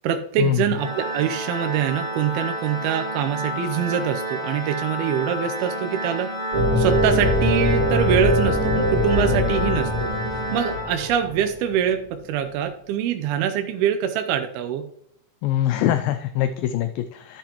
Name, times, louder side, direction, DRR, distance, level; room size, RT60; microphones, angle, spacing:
voice 1, 0.0-6.3 6.8-14.8, right 9 dB, 80° right, 6 dB, 2.4 m, -24 dB
Organ, 0.7-11.5, right 1 dB, 10° right, 2.2 m, -30 dB
sound 1, 6.5-11.6, left 1 dB, 45° right, 2.0 m, -22 dB
voice 2, 15.4-17.4, left 12 dB, 90° left, 9 dB, 2.0 m, -23 dB
11.5 x 7.0 x 2.9 m, 0.73 s
omnidirectional pair, 4.7 m